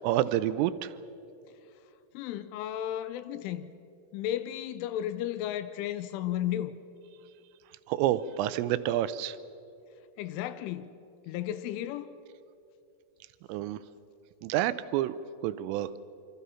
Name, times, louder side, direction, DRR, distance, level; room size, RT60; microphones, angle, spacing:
voice 1, 0.0-0.9 7.9-9.4 13.5-13.8 14.4-15.2 15.4-15.9, right 13 dB, 85° right, 3.2 m, -28 dB
voice 2, 2.1-3.7 4.1-6.8 10.2-10.9 11.2-12.1, left 11 dB, 80° left, 3.0 m, -34 dB
26.5 x 24.0 x 5.7 m
omnidirectional pair, 5.9 m